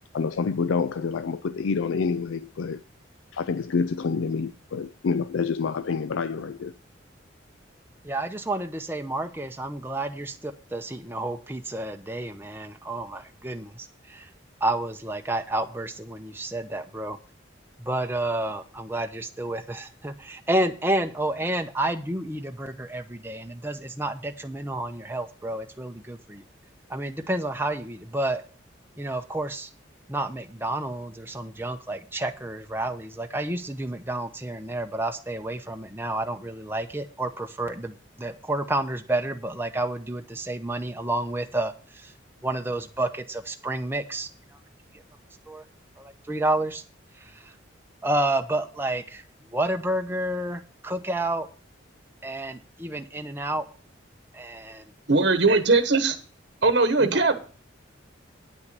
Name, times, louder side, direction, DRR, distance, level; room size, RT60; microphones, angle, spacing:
voice 1, 0.1-2.8 3.3-6.7, left 5 dB, 80° left, 0.4 m, -27 dB
voice 2, 8.0-14.3 14.6-17.2 17.8-26.4 26.9-28.4 29.0-29.7 30.1-42.1 42.4-44.3 45.5-45.6 46.0-46.8 47.2-47.5 48.0-49.2 49.5-51.5 52.2-53.7 54.3-54.9 57.0-57.2, right 1 dB, 10° right, 0.7 m, -30 dB
voice 3, 55.1-56.2 56.6-57.3, right 3 dB, 60° right, 1.1 m, -20 dB
9.5 x 5.8 x 6.7 m
head